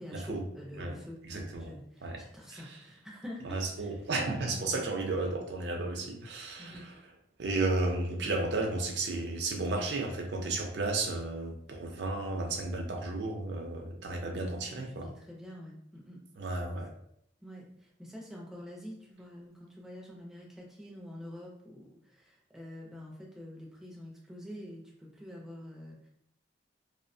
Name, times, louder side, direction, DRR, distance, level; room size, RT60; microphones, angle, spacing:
voice 1, 0.0-4.0 4.5-4.9 6.6-6.9 14.6-16.8 17.4-26.1, equal, 5° right, -3 dB, 0.5 m, -47 dB
voice 2, 1.3-1.7 2.0-2.2 2.5-2.6 3.4-6.8 7.4-15.1 16.4-16.9, right 2 dB, 65° right, 2 dB, 0.5 m, -33 dB
2.7 x 2.1 x 2.6 m, 0.73 s
head